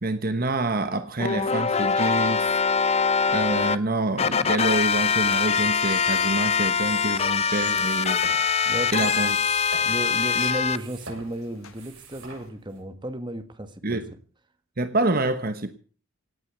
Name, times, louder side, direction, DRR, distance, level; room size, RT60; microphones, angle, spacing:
voice 1, 0.0-2.6 3.3-8.5 8.9-9.4 13.8-14.1 14.8-15.7, right 2 dB, 45° right, 1.2 m, -27 dB
sound 1, 1.2-3.8 4.2-10.8, left 6 dB, 30° left, 0.7 m, -23 dB
Engine, 5.2-12.5, left 11 dB, 85° left, 1.8 m, -42 dB
sound 2, 7.4-12.8, right 3 dB, 65° right, 7.4 m, -44 dB
voice 2, 8.6-9.1 9.8-14.0, right 1 dB, 20° right, 1.6 m, -33 dB
17.0 x 9.4 x 8.1 m
head